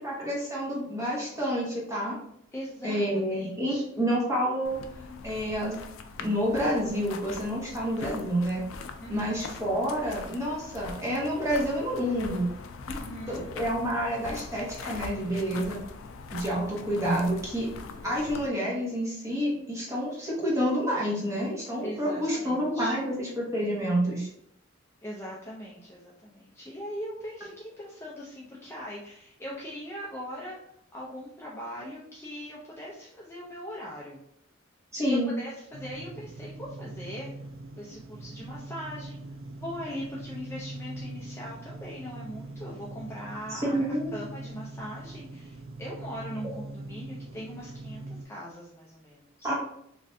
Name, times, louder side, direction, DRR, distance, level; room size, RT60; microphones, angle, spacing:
voice 1, 0.0-2.2 2.8-4.8 5.2-5.7 6.2-8.6 9.1-12.5 13.3-15.8 16.3-17.7 18.0-24.3 34.9-35.3 43.5-44.1 49.4-49.5, equal, 15° right, -5 dB, 1.0 m, -28 dB
voice 2, 2.5-3.0 3.3-3.8 9.0-9.3 12.8-13.5 21.8-23.0 25.0-30.6 30.9-34.2 35.0-37.3 37.7-39.2 39.5-43.8 44.1-49.5, equal, 15° left, -5 dB, 0.4 m, -40 dB
sound 1, 4.6-18.5, left 4 dB, 80° left, 0.4 m, -42 dB
sound 2, 35.7-48.2, right 2 dB, 70° right, 0.4 m, -42 dB
3.2 x 2.5 x 2.6 m, 0.74 s
head